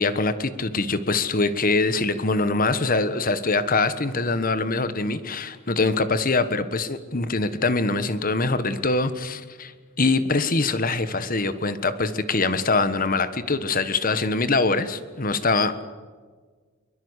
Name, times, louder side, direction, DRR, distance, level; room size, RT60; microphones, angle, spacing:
voice 1, 0.0-9.7 10.0-15.9, left 3 dB, 45° left, 13 dB, 1.4 m, -23 dB
23.0 x 22.5 x 8.3 m, 1.5 s
head